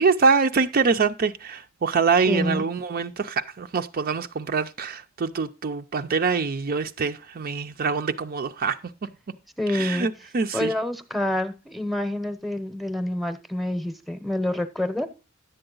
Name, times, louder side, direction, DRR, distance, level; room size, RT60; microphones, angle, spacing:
voice 1, 0.0-9.4 9.7-10.7, right 5 dB, 45° right, 0.5 m, -24 dB
voice 2, 2.3-2.6 9.6-10.1 10.5-15.1, left 1 dB, ahead, 0.8 m, -27 dB
10.5 x 7.8 x 3.8 m
head